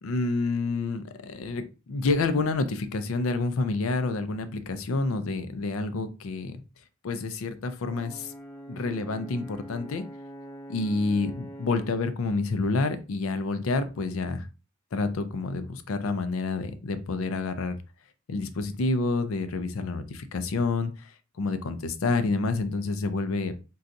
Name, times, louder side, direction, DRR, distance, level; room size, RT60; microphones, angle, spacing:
voice 1, 0.0-6.6 7.0-8.3 8.7-10.0 10.7-14.5 14.9-17.8 18.3-21.1 21.4-23.5, left 3 dB, 80° left, 10 dB, 0.4 m, -28 dB
Brass instrument, 7.8-12.1, equal, 10° left, 0.4 m, -44 dB
3.9 x 2.3 x 2.5 m, 0.32 s
head